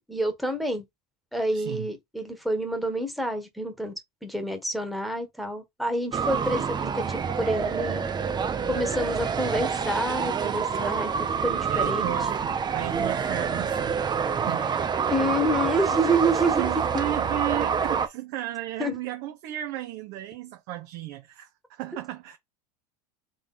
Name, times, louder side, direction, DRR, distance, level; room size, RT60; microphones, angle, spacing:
voice 1, 0.1-0.8 1.3-8.1 8.7-11.1 11.4-12.1 15.1-16.7 18.8-18.9, right 1 dB, ahead, 1.4 m, -28 dB
voice 2, 1.5-1.9 11.6-14.0 14.4-14.7 16.5-22.4, right 14 dB, 60° right, 0.8 m, -34 dB
sound 1, 6.1-18.1, right 6 dB, 20° right, 0.7 m, -27 dB
3.8 x 3.3 x 4.1 m
supercardioid pair, 105°, 20 cm